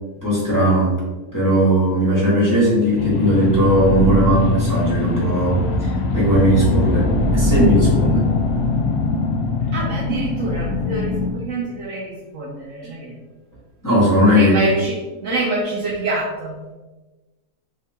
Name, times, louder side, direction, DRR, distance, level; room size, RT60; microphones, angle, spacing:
voice 1, 0.2-0.9 1.3-8.3 13.8-14.6, right 1 dB, 15° left, -9 dB, 1.1 m, -18 dB
sound 1, 3.0-11.3, left 3 dB, 75° left, 1.0 m, -21 dB
voice 2, 9.7-13.2 14.3-16.6, right 2 dB, 65° right, -3 dB, 0.8 m, -26 dB
3.6 x 2.8 x 3.3 m, 1.2 s
omnidirectional pair, 1.7 m